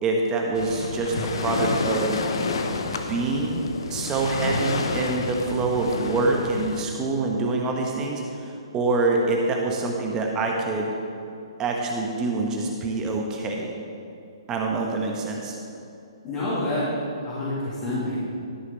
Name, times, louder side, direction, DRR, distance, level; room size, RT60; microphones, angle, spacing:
voice 1, 0.0-2.2 2.8-10.9 11.6-13.7 14.5-15.6, right 3 dB, 20° right, 0 dB, 1.2 m, -26 dB
Waves surf, 0.5-6.8, left 4 dB, 65° left, 1.0 m, -29 dB
voice 2, 16.2-16.9 17.2-18.2, left 1 dB, 30° left, -10 dB, 2.8 m, -27 dB
12.5 x 6.5 x 5.5 m, 2.6 s
figure-of-eight pair, 130°, 3 cm